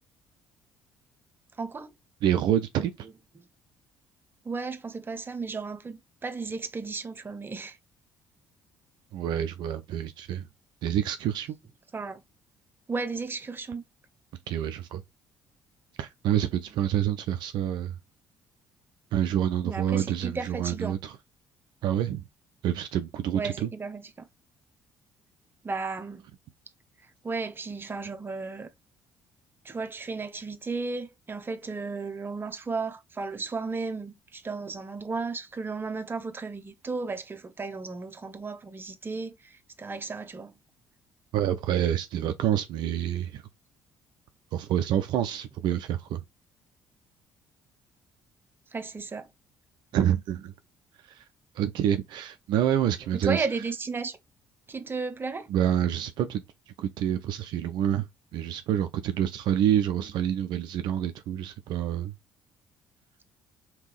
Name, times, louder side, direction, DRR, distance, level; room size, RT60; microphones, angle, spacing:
voice 1, 1.6-1.9 4.4-7.8 11.9-12.2 12.9-13.8 19.6-21.0 23.3-24.1 25.6-26.3 27.2-28.7 29.6-39.5 39.8-40.6 48.7-49.3 53.1-54.2 54.7-55.5, right 4 dB, 25° right, 0.7 m, -34 dB
voice 2, 2.2-3.1 9.1-10.5 10.8-11.6 14.5-15.0 16.0-18.0 19.1-21.1 21.8-22.2 22.6-23.7 41.3-43.4 44.5-46.2 49.9-50.5 51.0-51.2 51.6-53.5 55.5-56.4 56.8-58.1 58.3-62.1, right 10 dB, 60° right, 0.4 m, -27 dB
3.4 x 2.9 x 3.1 m
hypercardioid pair, 50°, 9 cm